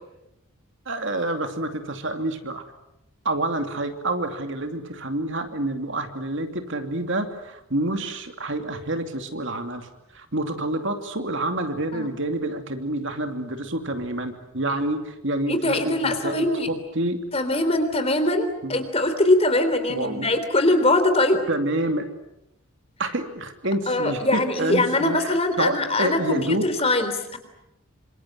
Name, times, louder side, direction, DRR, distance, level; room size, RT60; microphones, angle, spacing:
voice 1, 0.9-2.6 3.2-17.2 18.6-18.8 19.9-20.3 21.5-22.1 23.0-26.7, right 1 dB, 60° right, 6 dB, 2.8 m, -28 dB
voice 2, 15.5-16.7 17.3-21.5 23.9-27.4, left 2 dB, 30° left, 8 dB, 3.6 m, -22 dB
27.5 x 26.5 x 7.9 m, 0.86 s
head